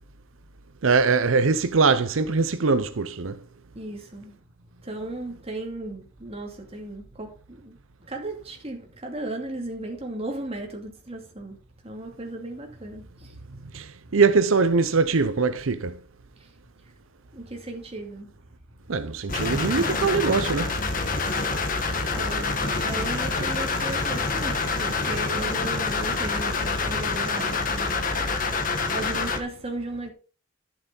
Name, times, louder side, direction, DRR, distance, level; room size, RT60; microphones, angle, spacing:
voice 1, 0.8-3.4 13.7-16.0 18.9-20.8, right 4 dB, 85° right, 0.7 m, -22 dB
voice 2, 3.7-4.4 4.8-13.6 14.1-14.2 16.4-16.5 17.3-18.3 22.1-30.1, right 2 dB, 30° right, 2.6 m, -36 dB
sound 1, 19.3-29.4, left 4 dB, 45° left, 1.5 m, -26 dB
11.5 x 7.2 x 4.0 m
head